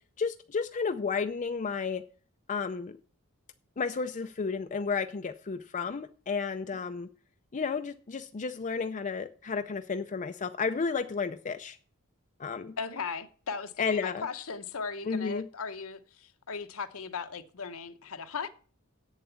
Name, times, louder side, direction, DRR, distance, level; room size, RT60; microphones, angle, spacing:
voice 1, 0.2-2.0 2.5-3.0 3.8-7.1 7.5-11.8 12.4-12.8 13.8-14.3 15.0-15.5, left 5 dB, 35° left, 0.5 m, -32 dB
voice 2, 12.8-18.5, left 5 dB, 70° left, 1.0 m, -37 dB
8.1 x 7.4 x 7.0 m
head